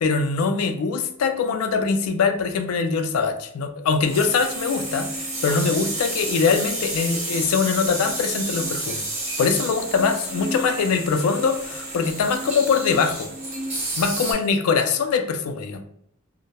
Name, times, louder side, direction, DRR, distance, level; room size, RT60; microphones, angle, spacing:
voice 1, 0.0-9.0 9.4-13.3 14.0-15.8, left 5 dB, 85° left, 7 dB, 0.3 m, -22 dB
sound 1, 4.0-14.3, right 1 dB, 30° right, 0.7 m, -30 dB
2.2 x 2.0 x 2.8 m, 0.69 s
head